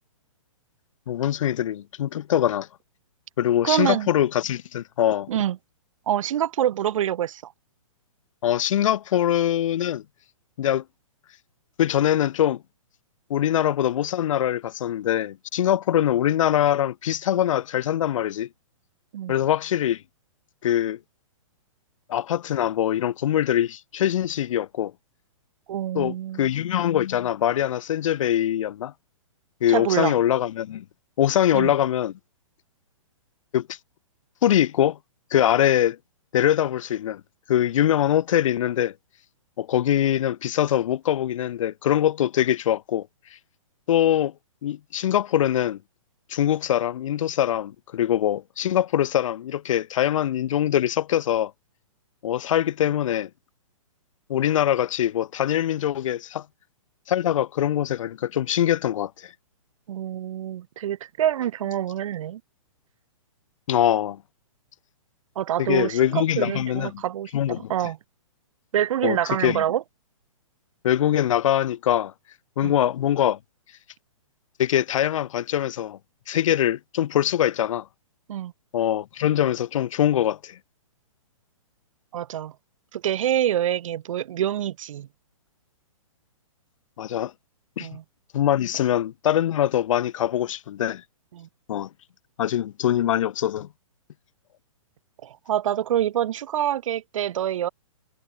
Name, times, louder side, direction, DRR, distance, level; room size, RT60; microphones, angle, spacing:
voice 1, 1.1-2.7 3.4-5.3 8.4-10.0 10.6-10.8 11.8-12.6 13.3-18.5 19.3-20.0 20.6-21.0 22.1-24.9 25.9-28.9 29.6-30.8 31.2-32.1 33.5-33.8 34.4-35.0 35.3-36.0 36.3-37.2 37.5-38.9 39.6-43.1 43.9-44.3 44.6-45.8 46.3-51.5 52.2-53.3 54.3-56.4 57.1-59.3 63.7-64.2 65.6-67.0 67.3-67.7 69.0-69.2 69.4-69.6 70.8-72.1 72.6-73.4 74.6-76.0 76.3-77.9 78.7-80.6 87.0-87.3 87.8-87.9 88.3-91.0 91.7-91.9 92.4-93.7, left 11 dB, 70° left, 0.4 m, -23 dB
voice 2, 3.6-4.1 5.3-5.6 6.1-7.5 19.1-19.3 25.7-26.5 29.7-30.1 31.5-31.7 59.9-62.4 65.4-68.0 68.7-69.8 72.6-72.7 78.3-78.5 82.1-82.5 82.9-85.1 87.8-88.0 91.3-91.5 95.2-97.7, right 11 dB, 70° right, 0.4 m, -26 dB
hypercardioid pair, 150°, 17 cm